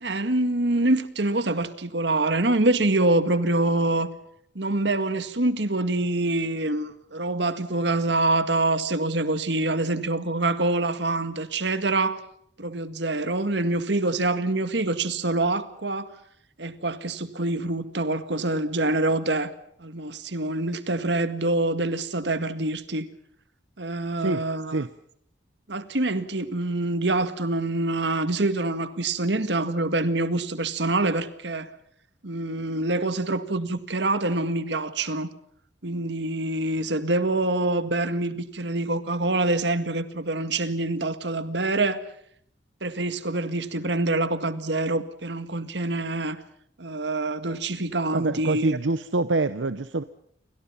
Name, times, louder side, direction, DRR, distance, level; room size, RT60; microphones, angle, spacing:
voice 1, 0.0-4.1 4.6-12.2 12.6-16.1 16.6-19.5 19.8-23.1 23.8-24.9 25.7-31.7 32.2-35.3 35.8-42.0 42.8-46.4 46.8-48.8, right 2 dB, 70° right, 1.9 m, -25 dB
voice 2, 48.1-50.0, right 3 dB, 85° right, 0.9 m, -25 dB
29.5 x 23.5 x 5.8 m
head